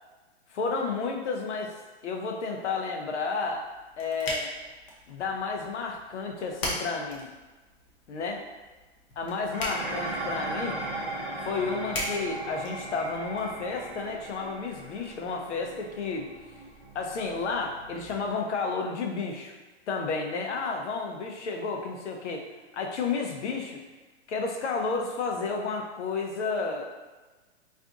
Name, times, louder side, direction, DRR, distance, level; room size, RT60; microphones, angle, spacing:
voice 1, 0.5-1.7 2.0-3.7 4.0-4.5 5.1-7.3 8.1-8.4 9.2-10.8 11.4-16.3 16.9-19.5 19.9-22.4 22.7-23.8 24.3-27.0, left 4 dB, 80° left, 2 dB, 0.7 m, -31 dB
sound 1, 3.5-13.4, left 1 dB, 25° left, 0.6 m, -40 dB
Dishes pots and pans, 9.5-18.3, right 2 dB, 20° right, 0.3 m, -38 dB
2.5 x 2.5 x 3.6 m, 1.2 s
hypercardioid pair, 145°, 35 cm